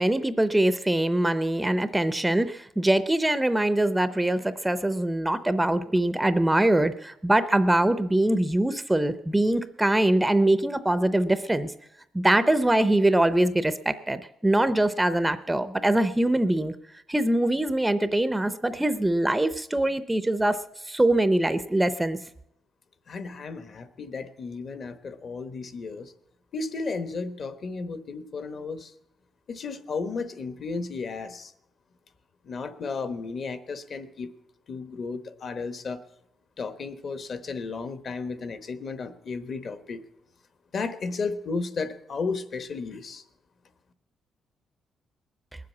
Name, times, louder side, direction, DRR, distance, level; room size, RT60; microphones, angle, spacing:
voice 1, 0.0-11.7 12.1-16.7 17.1-22.2, right 1 dB, 10° right, 12 dB, 0.6 m, -23 dB
voice 2, 23.1-26.1 26.5-28.9 29.5-31.5 32.4-34.3 34.7-36.0 36.6-40.0 40.7-43.2, left 4 dB, 50° left, 11 dB, 1.1 m, -34 dB
20.0 x 7.7 x 8.4 m, 0.82 s
cardioid pair, 125°, 0 cm